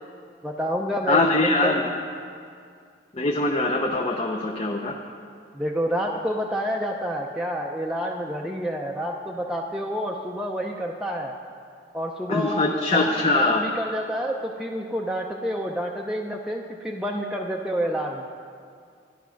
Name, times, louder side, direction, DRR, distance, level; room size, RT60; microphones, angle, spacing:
voice 1, 0.4-1.9 5.5-11.4 11.9-18.3, equal, 5° right, -1 dB, 0.6 m, -29 dB
voice 2, 1.1-1.8 3.1-4.9 12.3-13.6, left 2 dB, 30° left, 1 dB, 0.7 m, -22 dB
12.5 x 10.0 x 5.8 m, 2.2 s
head